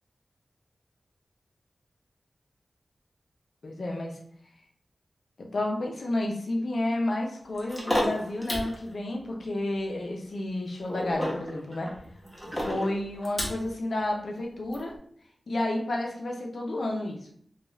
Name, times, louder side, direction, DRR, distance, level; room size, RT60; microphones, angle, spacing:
voice 1, 3.6-4.2 5.5-11.9 12.5-14.9 15.5-17.3, left 1 dB, 70° left, 0 dB, 0.6 m, -31 dB
sound 1, 7.6-8.8 10.9-13.7 14.7-14.8, equal, 10° left, 1.0 m, -31 dB
2.4 x 2.3 x 3.1 m, 0.63 s
wide cardioid pair, 80°, 0 cm